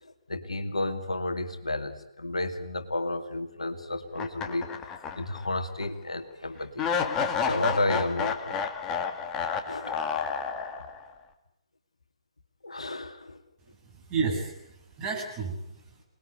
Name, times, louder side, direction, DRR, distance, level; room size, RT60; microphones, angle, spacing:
voice 1, 0.0-4.7 5.2-6.9 7.4-8.6 9.7-10.0 12.6-13.4, left 2 dB, 70° left, 6 dB, 2.3 m, -32 dB
sound 1, 4.1-5.5 5.8-5.9 6.8-11.1, left 6 dB, 15° left, 1.8 m, -30 dB
voice 2, 13.6-16.0, right 4 dB, 20° right, -1 dB, 7.6 m, -33 dB
27.5 x 20.5 x 8.3 m, 0.80 s
figure-of-eight pair, 135°, 3 cm